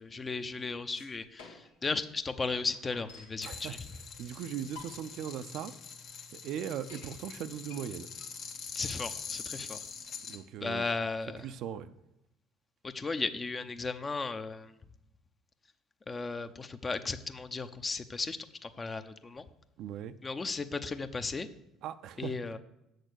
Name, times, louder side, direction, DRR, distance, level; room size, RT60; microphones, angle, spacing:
voice 1, 0.0-3.8 8.7-9.8 10.6-11.4 12.8-14.7 16.1-19.4 20.2-21.5 22.2-22.6, left 4 dB, 30° left, 10 dB, 0.7 m, -35 dB
sound 1, 0.9-1.9 2.2-2.3 2.5-3.4 4.2-4.3 4.6-5.2 5.7-5.8 6.1-6.2 6.6-7.1 7.6-10.5, left 5 dB, 80° left, 1.5 m, -53 dB
sound 2, 3.4-10.4, left 6 dB, 60° left, 1.3 m, -44 dB
voice 2, 3.4-5.7 6.3-8.1 10.3-10.9 11.4-11.9 19.8-20.1 21.8-22.3, right 9 dB, 60° right, 11 dB, 0.5 m, -39 dB
7.9 x 6.5 x 6.4 m, 0.85 s
hypercardioid pair, 60°, 0 cm